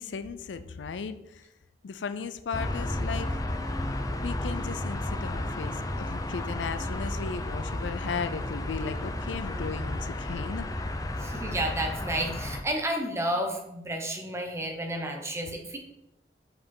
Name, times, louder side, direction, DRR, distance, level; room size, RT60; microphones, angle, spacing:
voice 1, 0.0-1.4 1.8-3.3 4.2-10.7, left 5 dB, 75° left, 11 dB, 0.5 m, -36 dB
sound 1, 2.5-12.6, left 1 dB, 20° left, 0.5 m, -32 dB
voice 2, 11.2-15.8, right 1 dB, 15° right, 2 dB, 1.0 m, -31 dB
5.2 x 5.0 x 5.4 m, 0.88 s
head